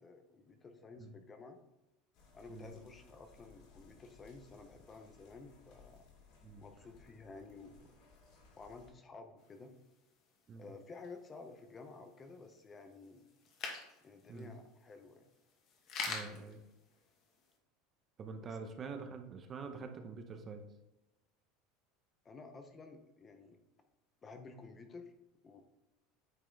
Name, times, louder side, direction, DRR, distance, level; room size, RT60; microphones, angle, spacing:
voice 1, 0.0-1.6 2.3-6.0 6.6-7.9 8.6-9.7 10.6-13.2 14.0-15.3 18.4-18.6 22.2-23.6 24.2-25.1 25.4-25.6, left 4 dB, 20° left, 7 dB, 0.6 m, -53 dB
sound 1, 2.1-8.9, left 4 dB, 60° left, 2.7 m, -62 dB
sound 2, 9.4-17.5, left 4 dB, 45° left, 1.4 m, -48 dB
voice 2, 16.1-16.6 18.2-20.6, right 4 dB, 25° right, 6 dB, 0.7 m, -46 dB
9.1 x 4.3 x 3.3 m, 0.93 s
supercardioid pair, 145°, 0 cm